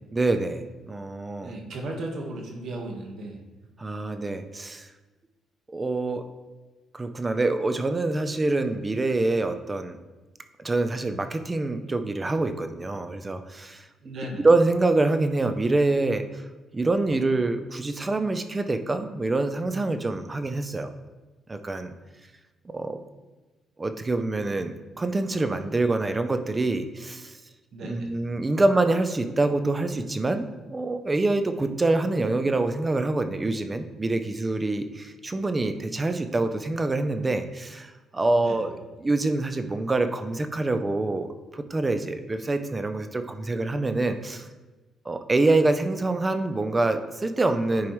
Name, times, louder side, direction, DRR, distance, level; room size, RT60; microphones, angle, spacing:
voice 1, 0.1-1.5 3.8-4.9 5.7-6.2 6.9-10.0 10.6-13.9 14.4-16.2 16.7-20.9 21.5-21.9 22.7-23.0 23.8-27.3 27.8-44.5 45.1-47.9, right 2 dB, 25° right, 8 dB, 0.6 m, -25 dB
voice 2, 1.4-3.4 14.0-14.4 27.7-28.1 38.3-38.6, right 1 dB, 65° right, 1 dB, 1.5 m, -35 dB
10.5 x 4.7 x 3.2 m, 1.2 s
cardioid pair, 90°, 0 cm